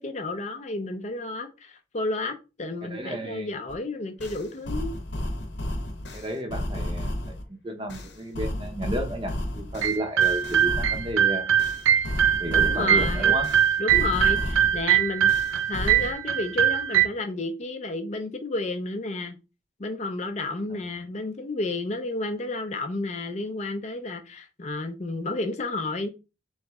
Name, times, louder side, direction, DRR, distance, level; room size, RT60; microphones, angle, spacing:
voice 1, 0.0-5.0 12.5-13.4 13.8-15.3 15.7-19.4 19.8-26.1, left 2 dB, 35° left, 0.4 m, -31 dB
voice 2, 2.8-3.6 6.1-7.4 7.6-11.5 12.4-13.5, right 1 dB, 25° right, 0.7 m, -32 dB
sound 1, 3.7-3.8 4.2-7.4 7.9-11.1 11.6-14.8 15.3-16.1, left 1 dB, 60° left, 0.8 m, -32 dB
sound 2, 9.8-17.1, right 10 dB, 90° right, 0.4 m, -22 dB
3.8 x 3.1 x 3.5 m
head